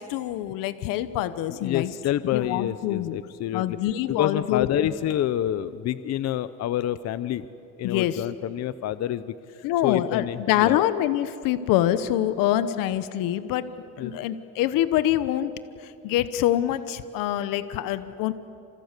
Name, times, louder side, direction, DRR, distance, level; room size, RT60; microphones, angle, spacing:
voice 1, 0.0-1.9 2.3-3.1 3.5-4.7 7.8-8.2 9.6-15.5 15.8-18.3, left 12 dB, 80° left, 13 dB, 1.1 m, -25 dB
voice 2, 1.5-3.8 4.1-7.4 7.8-10.9 14.0-14.1, left 11 dB, 50° left, 14 dB, 0.8 m, -28 dB
30.0 x 27.5 x 6.7 m, 2.9 s
cardioid pair, 120°, 33 cm